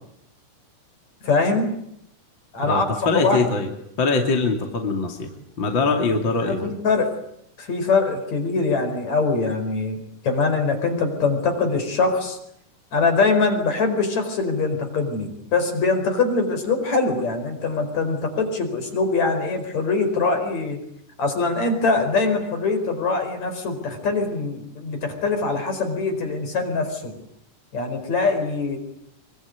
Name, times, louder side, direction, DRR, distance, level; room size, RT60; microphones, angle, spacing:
voice 1, 1.2-1.7 2.5-2.9 3.1-3.4 6.4-7.1 7.6-10.0 10.2-12.4 12.9-20.8 21.2-27.2 27.7-28.8, left 4 dB, 60° left, 6 dB, 6.0 m, -23 dB
voice 2, 2.6-3.7 4.0-5.3 5.6-6.7, left 3 dB, 40° left, 3 dB, 3.3 m, -23 dB
25.5 x 24.0 x 9.7 m, 0.75 s
omnidirectional pair, 3.6 m